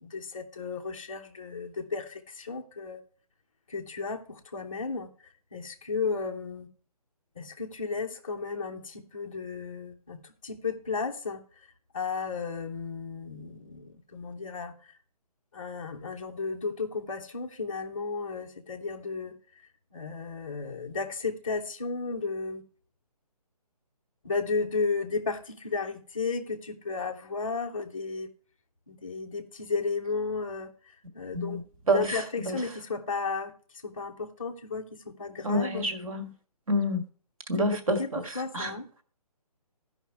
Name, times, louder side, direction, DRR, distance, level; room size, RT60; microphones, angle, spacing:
voice 1, 0.0-3.0 3.7-5.1 5.5-6.7 7.4-11.4 11.9-14.7 15.5-19.4 19.9-22.6 24.2-28.3 28.9-30.7 31.1-31.6 31.9-33.5 33.8-35.9 37.6-38.9, left 4 dB, 15° left, 0.4 m, -34 dB
voice 2, 35.4-36.3 36.7-37.0 37.5-38.2 38.5-38.7, equal, 60° right, 2.0 m, -27 dB
14.0 x 5.2 x 4.6 m
hypercardioid pair, 170°, 20 cm